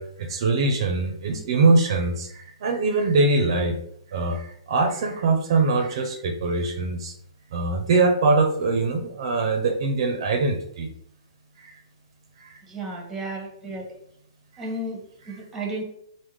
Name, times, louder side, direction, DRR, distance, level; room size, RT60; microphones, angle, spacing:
voice 1, 0.0-3.8 4.1-7.1 7.5-10.9 11.6-11.7 12.4-12.6, right 3 dB, 55° right, 5 dB, 0.4 m, -23 dB
voice 2, 12.7-14.0 14.6-15.0 15.3-15.8, right 1 dB, 10° right, 0 dB, 0.7 m, -33 dB
3.5 x 2.0 x 3.1 m, 0.70 s
hypercardioid pair, 145°, 3 cm